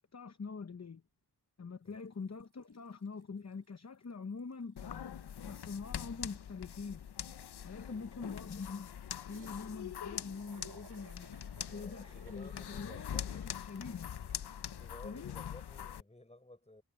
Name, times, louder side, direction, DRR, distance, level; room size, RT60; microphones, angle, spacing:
voice 1, 0.1-1.0 1.6-5.1 5.4-7.0 7.6-11.3 11.7-14.2 15.0-15.3, left 4 dB, 45° left, 1.0 m, -44 dB
sound 1, 1.9-2.1 2.4-3.7 4.0-4.1 4.4-7.2 9.3-14.9, right 4 dB, 85° right, 3.9 m, -61 dB
sound 2, 4.8-16.0, left 9 dB, 90° left, 0.7 m, -43 dB
voice 2, 7.9-8.3 11.5-13.5 14.7-16.8, left 1 dB, 15° left, 6.4 m, -55 dB
wide cardioid pair, 95°, 38 cm